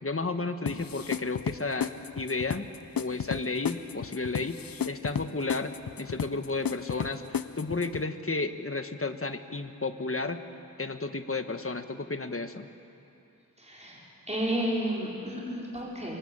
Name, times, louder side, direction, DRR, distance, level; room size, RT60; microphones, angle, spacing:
voice 1, 0.0-2.7 3.0-4.6 4.9-5.7 6.0-7.2 7.6-10.4 10.8-12.7, left 3 dB, 40° left, 8 dB, 1.4 m, -32 dB
sound 1, 0.7-8.0, left 8 dB, 80° left, 0.6 m, -34 dB
voice 2, 13.6-16.2, right 1 dB, 20° right, -5 dB, 5.3 m, -32 dB
24.0 x 23.5 x 8.9 m, 2.8 s
wide cardioid pair, 60°, 34 cm